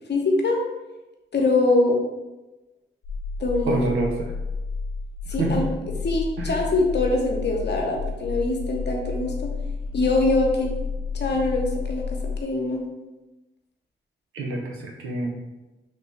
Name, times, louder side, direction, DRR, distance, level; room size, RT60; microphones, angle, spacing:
voice 1, 0.1-0.6 1.3-2.0 3.4-3.8 5.3-5.6 6.0-9.5 9.9-10.7 11.1-12.8, left 2 dB, 55° left, 1 dB, 0.8 m, -23 dB
sound 1, 3.0-12.4, left 4 dB, 85° left, 0.5 m, -31 dB
voice 2, 3.6-4.3 5.4-5.6 6.4-6.5 14.3-15.4, right 2 dB, 85° right, 0 dB, 0.6 m, -27 dB
3.2 x 2.6 x 3.1 m, 1.0 s
supercardioid pair, 40°, 21 cm